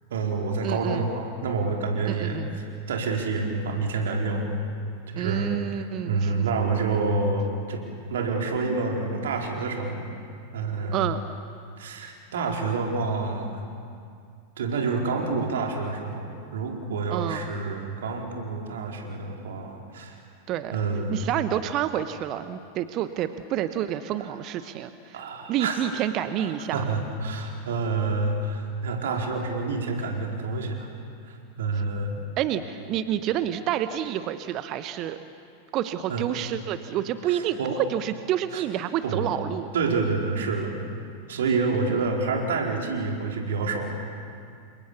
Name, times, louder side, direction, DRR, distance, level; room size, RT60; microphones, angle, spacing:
voice 1, 0.1-4.5 5.1-10.1 10.5-11.1 11.8-13.6 14.6-20.2 20.7-21.3 25.1-25.8 26.7-30.9 31.3-32.2 36.1-36.2 37.3-37.7 38.5-38.6 39.0-39.3 39.7-40.8 41.3-43.9, right 3 dB, 60° right, 1 dB, 4.6 m, -28 dB
voice 2, 0.6-1.1 2.0-2.6 5.1-6.4 10.9-11.2 17.1-17.5 20.5-20.8 21.1-26.8 32.4-35.2 35.7-39.7, right 11 dB, 35° right, 11 dB, 1.2 m, -29 dB
29.5 x 27.0 x 7.2 m, 2.4 s
figure-of-eight pair, 90°, 0 cm